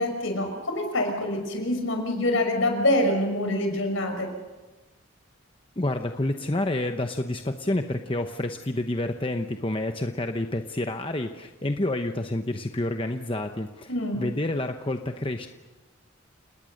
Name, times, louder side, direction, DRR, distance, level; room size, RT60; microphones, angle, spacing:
voice 1, 0.0-4.3 13.9-14.2, left 1 dB, 65° left, 4 dB, 5.8 m, -25 dB
voice 2, 5.8-15.5, left 1 dB, 25° left, 6 dB, 0.9 m, -29 dB
29.5 x 19.5 x 6.6 m, 1.2 s
head